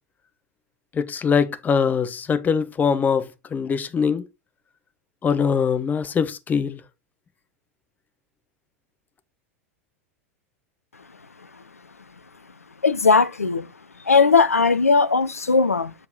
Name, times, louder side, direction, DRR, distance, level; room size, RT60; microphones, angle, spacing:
voice 1, 0.9-4.2 5.2-6.8, left 6 dB, 20° left, 0.9 m, -22 dB
voice 2, 12.8-13.7 14.1-15.9, left 4 dB, 85° left, 0.6 m, -18 dB
7.5 x 4.7 x 3.7 m
figure-of-eight pair, 85°, 8 cm